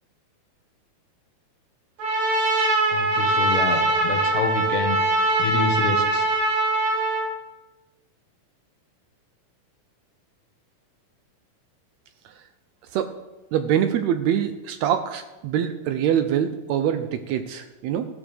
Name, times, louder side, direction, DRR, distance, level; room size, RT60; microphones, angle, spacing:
Trumpet, 2.0-7.3, right 2 dB, 65° right, 4.0 m, -22 dB
voice 1, 2.9-5.0 5.4-6.3, left 4 dB, 75° left, 4 dB, 2.9 m, -27 dB
voice 2, 13.5-18.1, right 9 dB, 80° right, 9 dB, 1.6 m, -24 dB
14.5 x 12.5 x 3.4 m, 1.1 s
omnidirectional pair, 3.8 m